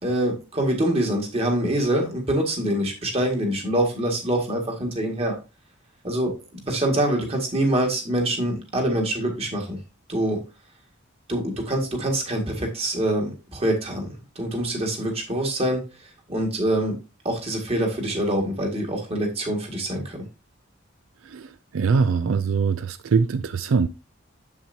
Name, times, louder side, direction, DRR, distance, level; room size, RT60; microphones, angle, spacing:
voice 1, 0.0-5.4 6.0-9.8 10.1-10.4 11.3-17.0 17.2-20.3, right 1 dB, 30° right, 2.0 m, -25 dB
voice 2, 21.2-23.9, right 5 dB, 85° right, 0.4 m, -23 dB
7.5 x 7.2 x 2.7 m
head